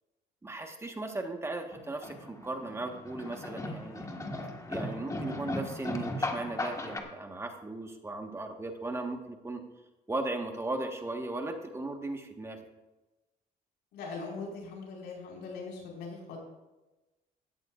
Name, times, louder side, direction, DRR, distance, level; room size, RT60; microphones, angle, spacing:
voice 1, 0.4-4.1 4.7-9.6 10.1-12.6, right 2 dB, 15° right, 4 dB, 1.4 m, -37 dB
sound 1, 1.7-7.0, left 2 dB, 20° left, 1.6 m, -37 dB
voice 2, 13.9-16.4, left 4 dB, 85° left, -2 dB, 5.1 m, -41 dB
17.0 x 13.0 x 2.5 m, 1.1 s
cardioid pair, 110°, 17 cm